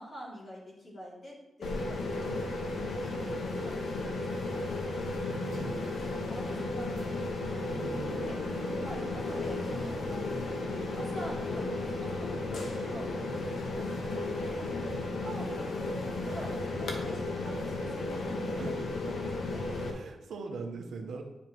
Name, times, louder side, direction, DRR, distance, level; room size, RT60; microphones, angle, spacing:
voice 1, 0.0-2.4 3.0-4.6 6.3-7.8 8.1-8.4 8.8-10.3 10.9-19.2 19.5-19.6 20.5-20.7, equal, 35° left, -5 dB, 2.8 m, -46 dB
sound 1, 1.6-19.9, left 2 dB, 75° left, 1.2 m, -34 dB
voice 2, 4.9-5.8 7.7-8.2 18.5-19.3 19.9-21.2, right 4 dB, 85° right, 2 dB, 1.1 m, -42 dB
sound 2, 7.8-20.2, right 2 dB, 15° right, 2.3 m, -51 dB
10.0 x 5.3 x 3.1 m, 0.92 s
wide cardioid pair, 135°, 0 cm